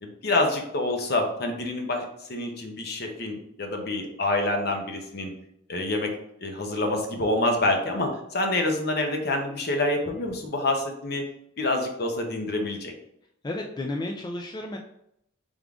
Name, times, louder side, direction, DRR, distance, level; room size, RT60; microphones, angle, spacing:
voice 1, 0.0-5.3 5.7-6.1 6.4-11.2 11.6-12.9, left 2 dB, 60° left, 3 dB, 0.9 m, -27 dB
voice 2, 13.4-14.8, left 2 dB, 20° left, 2 dB, 0.3 m, -32 dB
3.7 x 3.5 x 3.6 m, 0.75 s
head